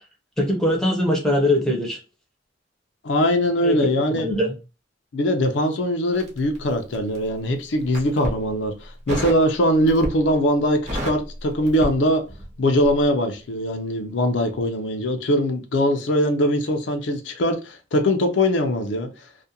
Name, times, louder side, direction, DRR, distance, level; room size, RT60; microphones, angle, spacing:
voice 1, 0.4-2.0 3.6-3.8 4.1-4.5, left 1 dB, 5° left, 0.6 m, -21 dB
voice 2, 3.0-4.3 5.1-12.2 12.6-19.1, equal, 75° left, 0.5 m, -21 dB
Crackle, 6.1-7.3 7.8-8.4 9.1-9.5 9.9-10.3 10.6-12.6 12.8-13.0, equal, 40° right, 0.9 m, -30 dB
2.4 x 2.2 x 2.7 m
head